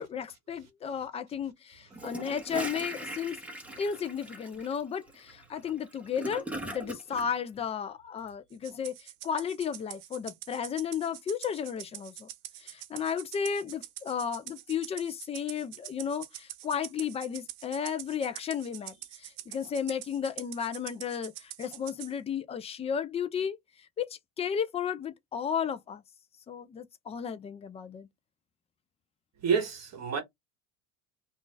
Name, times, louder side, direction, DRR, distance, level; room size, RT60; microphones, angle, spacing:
voice 1, 0.0-3.4 3.8-12.3 12.6-23.6 24.0-26.0 26.5-28.1, left 7 dB, 15° left, 0.3 m, -34 dB
Gurgling / Toilet flush, 1.9-7.3, right 1 dB, 5° right, 0.9 m, -40 dB
Rattle (instrument), 8.6-22.1, right 14 dB, 85° right, 0.7 m, -45 dB
voice 2, 29.4-30.2, right 6 dB, 40° right, 1.0 m, -28 dB
2.5 x 2.4 x 3.7 m
supercardioid pair, 105°, 43 cm